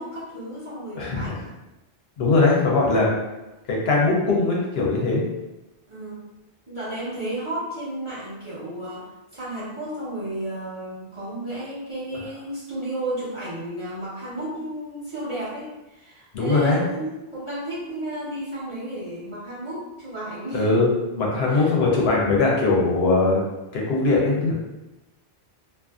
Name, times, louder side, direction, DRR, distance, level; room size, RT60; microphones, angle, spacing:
voice 1, 0.0-1.5 5.9-6.2 6.7-20.7 21.5-21.7, right 1 dB, 30° right, -10 dB, 0.9 m, -33 dB
voice 2, 1.0-1.4 2.2-3.1 3.7-5.2 16.3-16.8 20.5-20.9 21.2-23.4 23.7-24.5, left 3 dB, 75° left, -3 dB, 0.9 m, -20 dB
2.6 x 2.5 x 2.4 m, 1.0 s
omnidirectional pair, 1.1 m